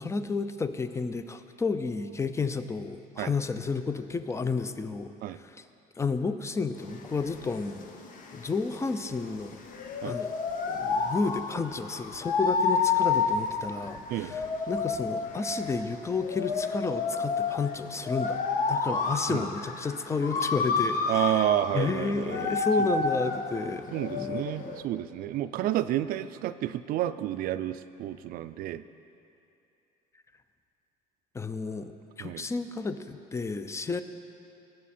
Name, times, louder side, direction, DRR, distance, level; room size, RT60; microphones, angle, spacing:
voice 1, 0.0-5.1 5.4-5.6 6.0-7.9 8.3-9.6 10.0-10.3 10.7-18.4 18.7-21.5 21.7-23.9 24.2-24.7 31.3-34.0, left 4 dB, 20° left, 10 dB, 0.6 m, -31 dB
sound 1, 6.8-24.8, left 4 dB, 55° left, 1.0 m, -30 dB
voice 2, 21.1-22.9 23.9-28.8 32.2-32.4, right 12 dB, 65° right, 13 dB, 0.4 m, -30 dB
18.5 x 7.6 x 4.4 m, 2.7 s
cardioid pair, 110°, 16 cm